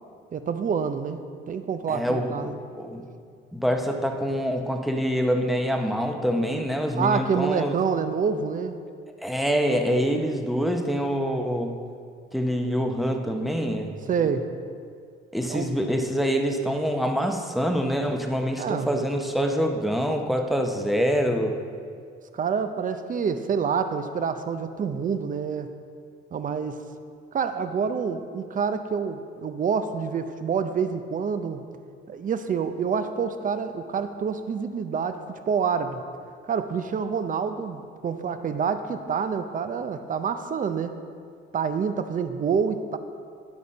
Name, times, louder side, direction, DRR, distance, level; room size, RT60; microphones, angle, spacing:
voice 1, 0.3-1.2 1.5-2.6 7.0-8.8 14.1-14.5 15.5-15.7 18.6-19.0 22.3-25.7 26.3-26.8 27.3-31.6 32.1-36.0 36.5-40.9 41.5-43.0, right 6 dB, 40° right, 9 dB, 0.6 m, -27 dB
voice 2, 1.9-3.1 3.5-7.8 9.2-11.7 12.3-14.0 15.3-21.6, equal, ahead, 3 dB, 0.7 m, -25 dB
10.5 x 5.1 x 4.0 m, 2.2 s
cardioid pair, 90°, 20 cm